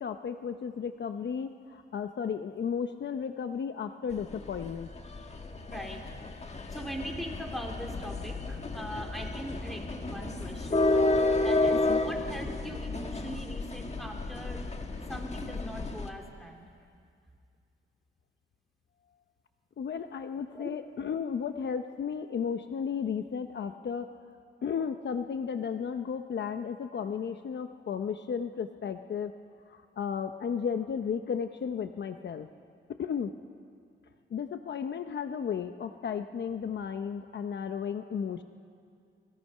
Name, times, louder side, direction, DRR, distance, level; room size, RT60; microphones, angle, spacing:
voice 1, 0.0-4.9 11.7-12.0 19.8-24.1 24.6-29.3 29.7-32.5 32.9-33.3 34.3-38.4, left 7 dB, 60° left, 8 dB, 0.8 m, -34 dB
sound 1, 4.1-16.1, left 2 dB, 35° left, 1.6 m, -31 dB
voice 2, 5.7-6.0 6.7-10.8 11.4-14.6 15.1-16.6 20.5-20.7, equal, ahead, 1 dB, 3.2 m, -41 dB
29.5 x 21.0 x 5.6 m, 2.3 s
wide cardioid pair, 135°, 20 cm